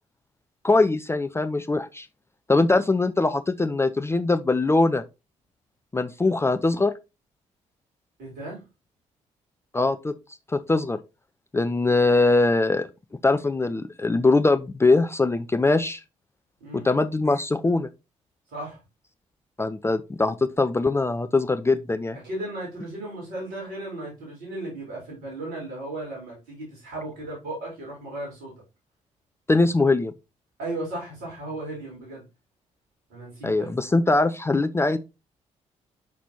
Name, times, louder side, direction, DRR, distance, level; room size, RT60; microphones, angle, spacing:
voice 1, 0.6-2.1 2.5-5.0 5.9-6.9 9.7-10.1 10.5-11.0 11.5-12.9 13.2-16.0 16.8-17.9 19.6-22.2 29.5-30.1 33.4-35.0, left 3 dB, 15° left, 0.5 m, -22 dB
voice 2, 8.2-8.6 16.6-16.9 18.5-18.8 22.2-28.5 30.6-32.2 33.1-33.7, right 2 dB, 70° right, 3.7 m, -35 dB
6.0 x 5.9 x 2.7 m
figure-of-eight pair, 40°, 17 cm